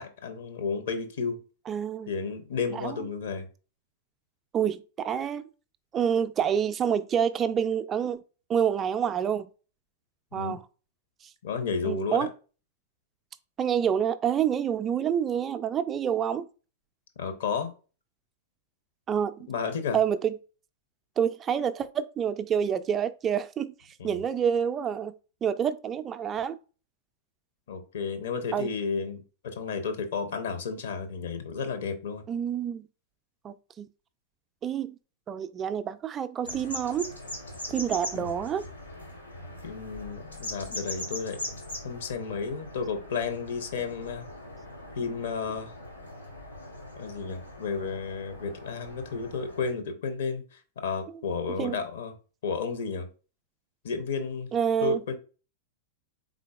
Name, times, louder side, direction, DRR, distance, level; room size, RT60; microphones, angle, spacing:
voice 1, 0.0-1.4 2.1-3.5 10.3-10.6 11.4-12.3 17.2-17.7 19.5-20.0 24.0-24.2 27.7-32.2 38.1-38.3 39.6-41.5 41.8-44.3 45.0-45.7 47.0-52.1 52.4-53.1 53.8-54.5 54.8-55.1, left 5 dB, 60° left, 0.7 m, -32 dB
voice 2, 1.7-2.1 2.7-3.0 4.5-5.5 5.9-8.2 8.5-9.5 10.3-10.6 11.8-12.3 13.6-16.5 19.1-19.5 19.9-20.4 21.2-23.7 24.0-25.1 25.4-26.6 28.5-28.7 32.3-32.9 33.4-33.9 34.6-35.0 35.3-37.1 37.7-38.7 51.1-51.2 51.6-51.8 54.5-55.0, right 8 dB, 25° right, 0.3 m, -28 dB
sound 1, 36.4-49.7, left 1 dB, 85° left, 1.6 m, -41 dB
3.9 x 3.7 x 2.4 m
figure-of-eight pair, 95°, 0 cm